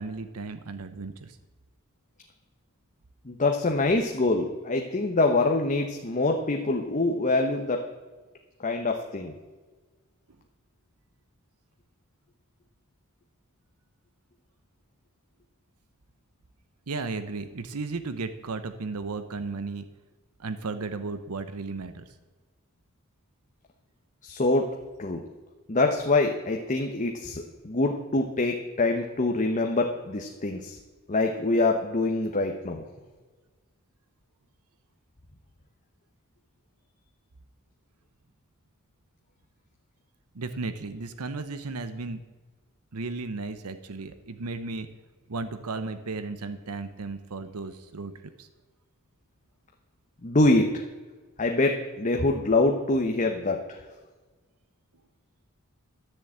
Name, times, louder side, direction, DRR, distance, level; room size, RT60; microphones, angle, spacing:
voice 1, 0.0-1.4 16.9-19.9 20.4-22.1 40.3-42.2 42.9-44.9 45.3-48.1 48.4-48.5, right 3 dB, 85° right, 11 dB, 0.8 m, -34 dB
voice 2, 3.2-7.9 8.6-9.3 24.2-24.7 25.0-25.2 25.7-30.8 31.1-32.9 50.2-50.8 51.4-53.8, left 2 dB, 35° left, 3 dB, 1.0 m, -25 dB
13.0 x 7.0 x 8.6 m, 1.3 s
head